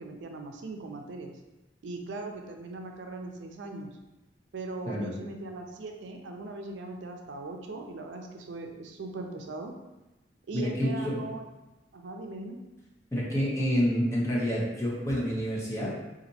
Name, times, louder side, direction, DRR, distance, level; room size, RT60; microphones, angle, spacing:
voice 1, 0.0-1.3 1.8-3.9 4.5-9.7 10.5-11.4 11.9-12.6, right 2 dB, 80° right, 3 dB, 0.4 m, -39 dB
voice 2, 10.5-11.2 13.1-15.9, equal, 15° left, -5 dB, 0.8 m, -28 dB
4.0 x 2.5 x 2.7 m, 1.0 s
head